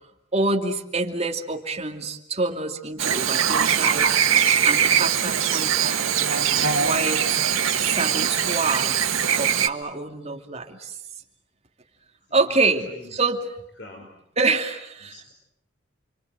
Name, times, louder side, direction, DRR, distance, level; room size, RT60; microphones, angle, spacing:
voice 1, 0.3-6.5 6.8-10.9 12.3-13.4 14.4-15.1, right 3 dB, 30° right, 2 dB, 2.6 m, -27 dB
Chirp tweet / Buzz, 3.0-9.7, right 8 dB, 90° right, 1.7 m, -21 dB
voice 2, 12.3-13.2 13.8-14.2 15.0-15.3, left 1 dB, 60° left, 2 dB, 5.4 m, -45 dB
29.5 x 25.5 x 7.9 m, 0.77 s
head